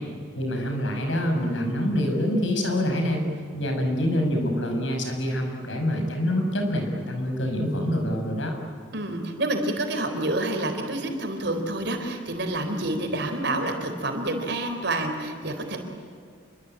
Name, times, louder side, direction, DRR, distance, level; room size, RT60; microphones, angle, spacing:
voice 1, 0.3-3.3 3.5-8.6, equal, 75° left, 3 dB, 6.1 m, -26 dB
voice 2, 8.9-15.8, right 1 dB, 60° right, 5 dB, 4.2 m, -28 dB
28.0 x 23.5 x 9.0 m, 2.2 s
head